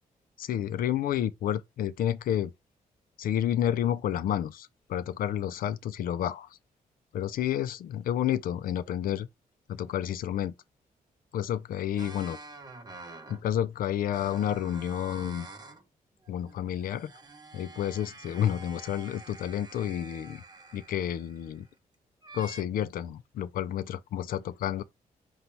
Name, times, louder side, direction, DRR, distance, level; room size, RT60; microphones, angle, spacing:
voice 1, 0.4-2.5 3.2-6.5 7.1-9.3 9.7-10.5 11.3-12.4 13.3-15.5 16.3-17.1 17.5-20.4 20.7-21.7 22.3-24.8, left 10 dB, 75° left, 0.4 m, -30 dB
sound 1, 12.0-13.5 14.1-15.9 16.2-21.7 22.2-22.6, right 3 dB, 30° right, 0.7 m, -48 dB
4.0 x 2.3 x 4.3 m
cardioid pair, 80°, 15 cm